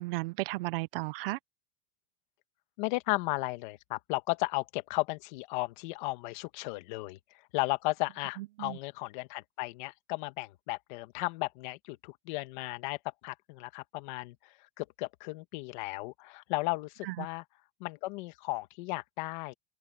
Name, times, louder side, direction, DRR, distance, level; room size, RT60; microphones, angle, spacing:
voice 1, 0.0-1.4 8.4-8.8 17.0-17.3, right 21 dB, 70° right, 0.6 m, -34 dB
voice 2, 2.8-7.2 7.5-13.0 13.2-17.4 17.8-19.5, left 22 dB, 55° left, 1.6 m, -35 dB
open air
supercardioid pair, 165°, 29 cm